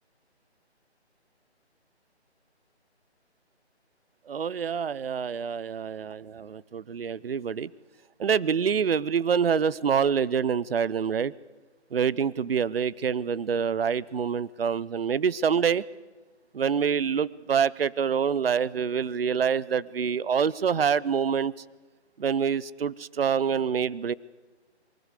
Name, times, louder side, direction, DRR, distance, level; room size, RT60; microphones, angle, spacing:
voice 1, 4.3-7.7 8.2-11.3 11.9-15.8 16.5-21.5 22.2-24.1, right 7 dB, 60° right, 21 dB, 0.7 m, -26 dB
23.5 x 19.5 x 8.3 m, 1.2 s
figure-of-eight pair, 165°, 34 cm